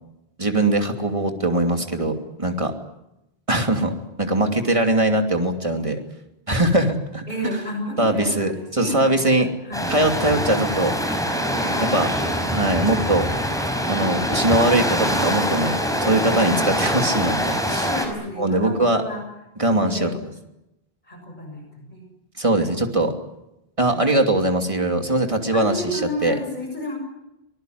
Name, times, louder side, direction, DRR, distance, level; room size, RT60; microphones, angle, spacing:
voice 1, 0.4-2.7 3.5-6.0 6.5-7.2 8.0-9.5 9.9-10.9 11.8-12.1 12.5-13.2 13.9-15.7 16.0-17.9 18.4-19.0 19.6-20.1 22.4-23.1 23.8-26.3, right 1 dB, 30° right, 4 dB, 3.0 m, -21 dB
voice 2, 7.3-10.0 10.5-10.8 11.6-12.0 12.8-13.1 13.9-14.2 16.5-16.7 17.7-19.2 19.7-20.2 21.0-22.0 23.9-24.2 25.5-27.0, left 1 dB, 50° left, 2 dB, 6.9 m, -32 dB
sound 1, 9.7-18.1, equal, 5° left, 5.4 m, -24 dB
25.0 x 20.0 x 9.5 m, 0.89 s
omnidirectional pair, 1.0 m